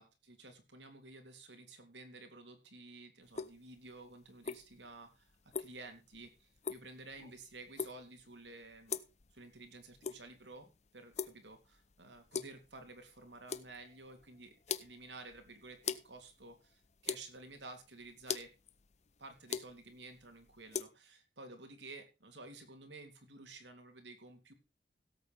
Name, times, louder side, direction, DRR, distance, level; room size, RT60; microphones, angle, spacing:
voice 1, 0.0-5.3 5.6-9.0 9.3-18.5 19.2-24.5, right 2 dB, 90° right, 6 dB, 3.1 m, -53 dB
sound 1, 3.3-20.9, left 6 dB, 40° left, 0.8 m, -44 dB
17.0 x 8.4 x 3.4 m, 0.30 s
head